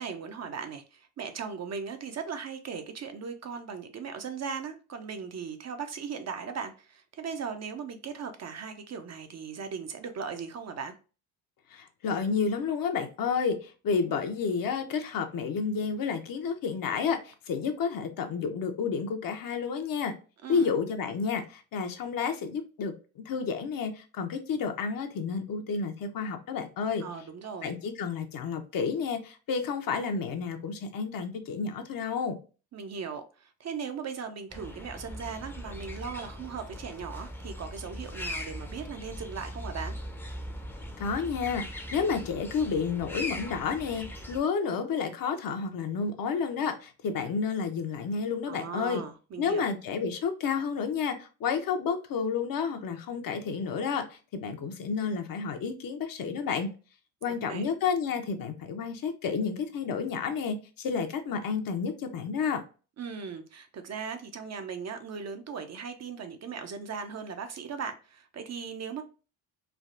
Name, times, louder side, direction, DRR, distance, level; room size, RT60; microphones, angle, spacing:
voice 1, 0.0-10.9 20.4-20.7 27.0-27.7 32.7-40.0 48.4-49.7 57.3-57.6 63.0-69.0, right 6 dB, 40° right, 0.5 m, -38 dB
voice 2, 11.7-20.1 20.5-27.0 27.6-32.4 41.0-49.0 49.4-56.7 57.2-62.6, left 5 dB, 55° left, 0.7 m, -30 dB
sound 1, 34.5-44.4, equal, 5° left, 0.5 m, -40 dB
3.4 x 2.3 x 2.4 m
cardioid pair, 80°, 42 cm